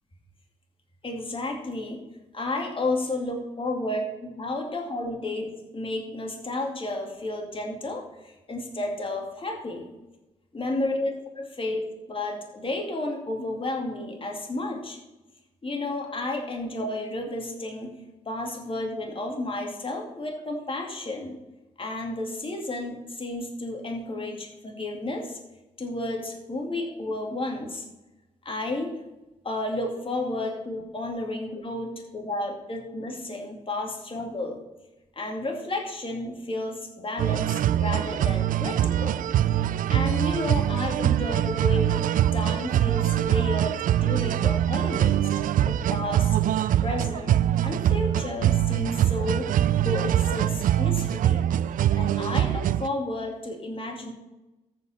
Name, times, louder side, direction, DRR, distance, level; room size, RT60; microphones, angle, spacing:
voice 1, 1.0-2.0 2.3-9.9 10.5-11.1 11.4-11.8 12.1-15.0 15.6-18.0 18.3-21.3 21.8-25.4 25.8-27.8 28.4-28.9 29.4-34.6 35.2-39.2 39.9-45.3 45.6-46.4 46.8-49.5 49.8-51.5 51.9-54.1, left 2 dB, 35° left, 1 dB, 2.4 m, -32 dB
sound 1, 37.2-52.9, right 11 dB, 60° right, 0.4 m, -23 dB
13.5 x 5.1 x 4.4 m, 1.0 s
hypercardioid pair, 40°, 16 cm